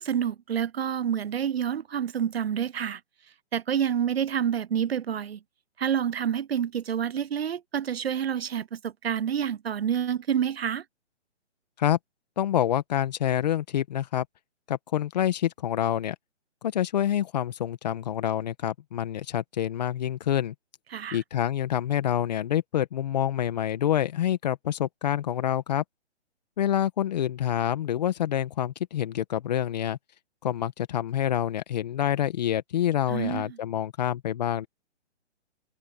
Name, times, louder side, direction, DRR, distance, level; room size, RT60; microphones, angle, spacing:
voice 1, 0.0-3.0 3.5-5.4 5.8-10.8 20.9-21.2 33.1-33.6, right 9 dB, 55° right, 0.7 m, -28 dB
voice 2, 12.4-14.3 14.7-16.2 16.6-20.5 21.1-25.8 26.6-30.0 30.4-34.7, left 11 dB, 35° left, 1.8 m, -27 dB
hypercardioid pair, 165°, 36 cm